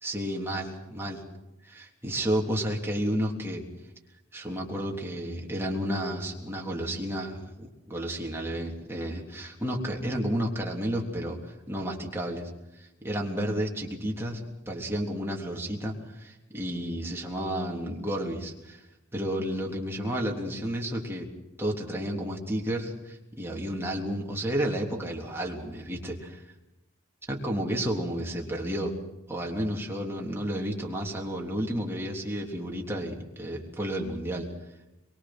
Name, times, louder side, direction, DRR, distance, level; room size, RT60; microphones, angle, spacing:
voice 1, 0.0-1.2 1.6-3.6 4.3-12.5 12.8-18.8 19.1-21.3 21.6-26.4 27.3-28.9 29.3-34.5, equal, 10° right, -1 dB, 3.5 m, -31 dB
24.0 x 23.5 x 6.3 m, 0.96 s
head